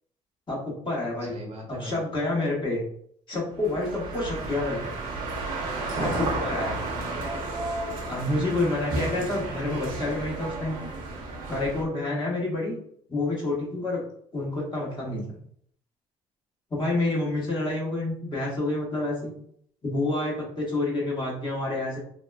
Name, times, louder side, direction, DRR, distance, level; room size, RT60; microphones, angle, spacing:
voice 1, 0.5-1.4 1.8-2.8 3.3-4.9 6.0-6.8 8.1-10.8 11.5-12.8 13.1-14.0 14.3-15.4 16.7-19.3 19.8-22.0, left 2 dB, 35° left, -4 dB, 1.2 m, -28 dB
voice 2, 1.2-2.0 6.0-7.6, right 1 dB, 55° right, 0 dB, 0.9 m, -40 dB
sound 1, 3.6-11.8, right 2 dB, 75° right, 0.7 m, -32 dB
2.7 x 2.1 x 2.3 m, 0.65 s
supercardioid pair, 80°, 14 cm